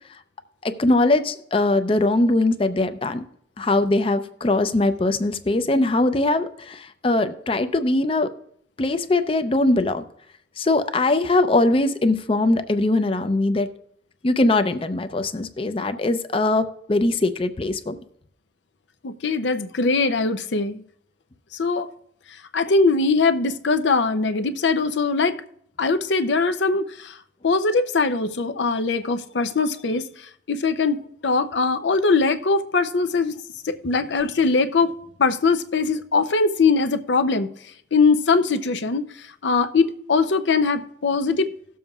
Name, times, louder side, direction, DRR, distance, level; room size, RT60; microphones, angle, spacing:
voice 1, 0.6-3.2 3.6-8.3 8.8-10.0 10.6-13.7 14.2-18.0, left 2 dB, 30° left, 10 dB, 0.5 m, -21 dB
voice 2, 19.0-20.8 21.5-21.9 22.5-25.4 25.8-27.2 27.4-30.1 30.5-33.3 33.6-34.9 35.2-37.5 37.9-41.5, left 4 dB, 85° left, 10 dB, 0.6 m, -21 dB
18.0 x 7.1 x 2.4 m, 0.68 s
head